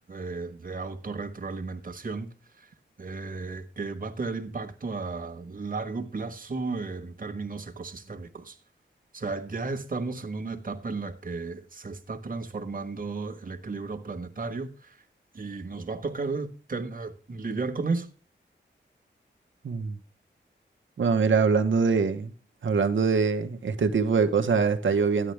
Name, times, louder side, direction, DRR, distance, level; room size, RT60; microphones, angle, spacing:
voice 1, 0.1-2.3 3.0-8.6 9.1-14.9 15.3-18.1, right 3 dB, 45° right, 1.5 m, -34 dB
voice 2, 19.6-20.0 21.0-22.3 22.6-25.3, right 5 dB, 90° right, 1.1 m, -23 dB
13.0 x 10.0 x 3.4 m
wide cardioid pair, 75°, 19 cm